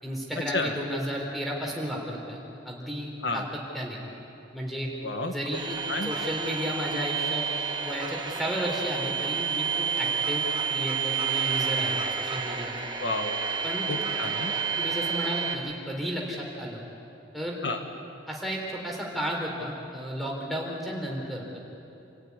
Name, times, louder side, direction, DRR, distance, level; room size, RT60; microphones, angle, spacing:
voice 1, 0.0-4.0 4.5-4.9 5.3-7.5 7.8-12.7 13.6-13.9 14.8-16.8 17.3-17.6 18.3-21.6, equal, ahead, -3 dB, 4.0 m, -33 dB
voice 2, 5.0-5.3 5.9-6.1 13.0-13.4 13.9-14.5 17.6-17.8, left 2 dB, 65° left, 5 dB, 1.5 m, -30 dB
sound 1, 5.5-15.5, right 6 dB, 25° right, 1.9 m, -30 dB
28.0 x 15.5 x 9.8 m, 2.8 s
head